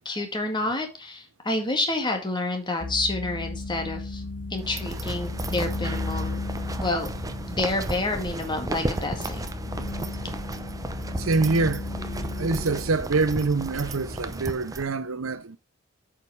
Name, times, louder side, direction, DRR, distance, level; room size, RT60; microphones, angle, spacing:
voice 1, 0.1-4.2 4.5-6.4 6.8-7.1 7.5-9.5, left 2 dB, 20° left, 2.0 m, -29 dB
sound 1, 2.8-14.4, left 3 dB, 40° left, 0.6 m, -35 dB
sound 2, 4.6-14.8, right 2 dB, 15° right, 0.7 m, -34 dB
voice 2, 11.2-11.9 12.4-15.6, right 3 dB, 80° right, 0.8 m, -25 dB
8.5 x 5.2 x 4.6 m
head